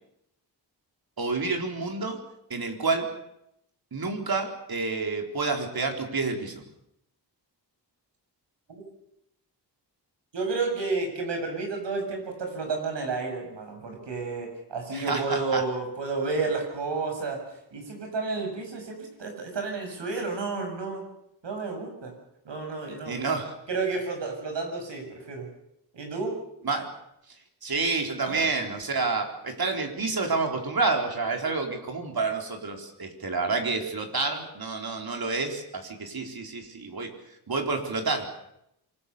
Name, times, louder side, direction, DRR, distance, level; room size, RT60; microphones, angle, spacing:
voice 1, 1.2-2.2 2.5-3.1 3.9-6.6 14.9-15.6 23.0-23.5 26.6-26.9 27.6-37.1 37.5-38.3, right 3 dB, 55° right, 3 dB, 4.3 m, -29 dB
voice 2, 10.3-17.4 17.7-21.0 21.4-22.1 22.5-23.2 23.7-25.5 25.9-26.3 28.2-28.5, right 4 dB, 85° right, 3 dB, 7.3 m, -31 dB
26.5 x 20.0 x 7.1 m, 0.81 s
cardioid pair, 70°, 42 cm